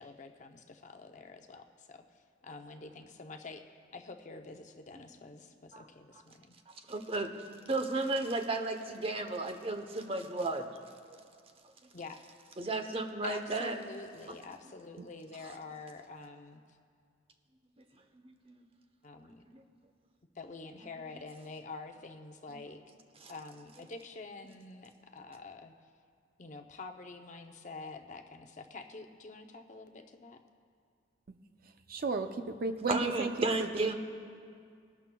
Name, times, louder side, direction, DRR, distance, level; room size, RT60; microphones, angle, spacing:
voice 1, 0.0-6.5 11.9-12.2 13.2-16.8 19.0-19.5 20.3-22.8 23.3-25.7 26.4-30.4, left 3 dB, 45° left, 5 dB, 0.7 m, -47 dB
voice 2, 6.7-7.3 7.6-10.8 11.1-11.2 12.6-13.8 18.2-18.6 19.5-19.6 23.2-23.3 32.9-33.9, right 2 dB, 30° right, 6 dB, 0.8 m, -34 dB
voice 3, 31.9-33.9, right 3 dB, 55° right, 8 dB, 0.5 m, -34 dB
21.0 x 11.5 x 2.3 m, 2.2 s
head